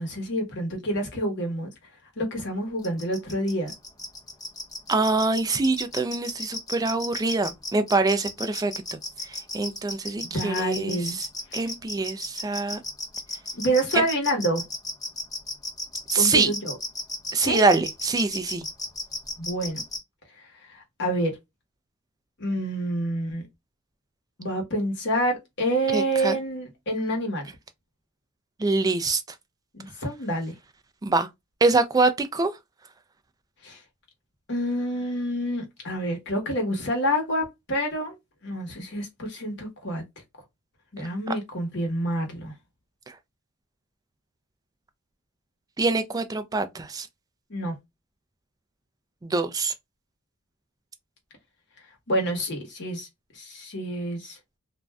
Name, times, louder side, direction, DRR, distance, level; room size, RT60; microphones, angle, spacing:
voice 1, 0.0-1.7 2.2-3.7 10.3-11.2 13.5-14.6 16.2-16.8 17.4-17.6 19.4-19.8 21.0-21.3 22.4-23.5 24.4-27.5 29.7-30.5 33.6-33.8 34.5-38.1 38.4-40.0 40.9-42.5 47.5-47.7 52.1-53.1 53.3-54.4, right 1 dB, 55° left, 1.1 m, -27 dB
sound 1, 2.8-20.0, left 2 dB, 20° left, 0.8 m, -33 dB
voice 2, 4.9-9.0 9.2-11.3 11.5-12.8 13.9-14.0 16.1-16.5 17.3-18.7 25.9-26.4 28.6-29.2 31.0-31.3 31.6-32.5 43.1-43.2 45.8-47.1 49.2-49.7, right 3 dB, 15° right, 0.3 m, -24 dB
2.5 x 2.2 x 3.3 m
head